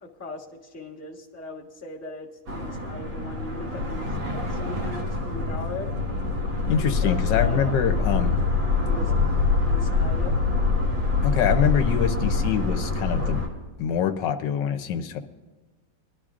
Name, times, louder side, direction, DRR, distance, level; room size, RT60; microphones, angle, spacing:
voice 1, 0.0-5.9 6.7-8.3 8.8-9.1 9.4-10.3, left 3 dB, 10° left, -4 dB, 1.1 m, -39 dB
sound 1, 2.5-13.5, left 3 dB, 80° right, 2.5 m, -25 dB
voice 2, 6.7-8.4 11.2-13.4 13.8-15.2, left 8 dB, 80° left, 7 dB, 1.4 m, -25 dB
21.5 x 12.0 x 2.5 m, 1.2 s
omnidirectional pair, 1.9 m